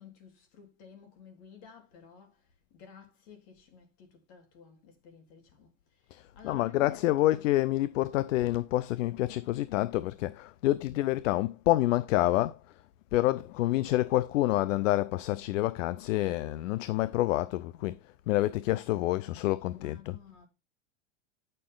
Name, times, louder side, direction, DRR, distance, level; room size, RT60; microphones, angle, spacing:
voice 1, 0.0-7.5 13.3-14.0 19.7-20.5, left 7 dB, 55° left, 3.9 m, -54 dB
voice 2, 6.1-12.8 13.1-20.2, left 16 dB, 75° left, 0.7 m, -28 dB
9.4 x 6.9 x 3.8 m
supercardioid pair, 145°, 38 cm